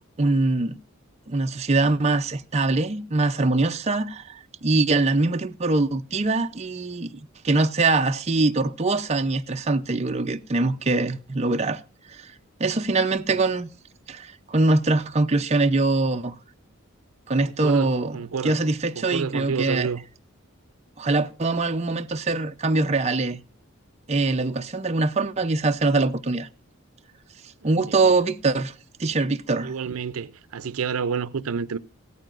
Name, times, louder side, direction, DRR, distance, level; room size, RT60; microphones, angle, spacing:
voice 1, 0.2-0.8 1.3-7.1 7.4-11.8 12.1-12.3 12.6-13.7 14.1-16.4 17.3-18.2 18.4-19.9 21.0-23.4 24.1-26.5 27.6-28.7 29.0-29.7, right 3 dB, 30° right, 0.5 m, -23 dB
voice 2, 17.4-18.5 19.0-20.0 27.9-28.0 29.6-31.8, right 6 dB, 75° right, 0.5 m, -29 dB
16.5 x 13.5 x 2.5 m
head